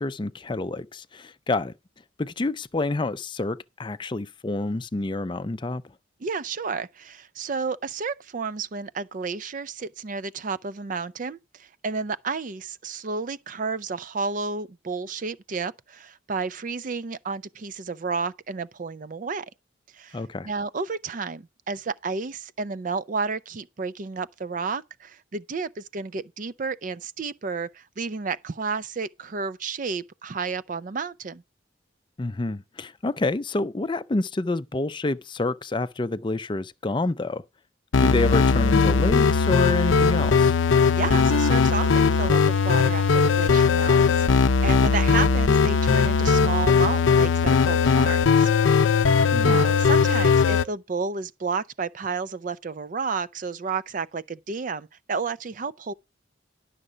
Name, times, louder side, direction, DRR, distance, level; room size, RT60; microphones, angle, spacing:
voice 1, 0.0-1.7 2.2-5.8 20.1-20.5 32.2-37.4 38.0-40.6 49.3-49.6, left 2 dB, 25° left, 0.4 m, -28 dB
voice 2, 6.2-19.5 19.9-31.4 41.0-48.5 48.8-49.1 49.4-55.9, right 4 dB, 40° right, 0.4 m, -31 dB
sound 1, 37.9-50.6, left 5 dB, 80° left, 0.5 m, -19 dB
11.0 x 6.5 x 5.0 m
head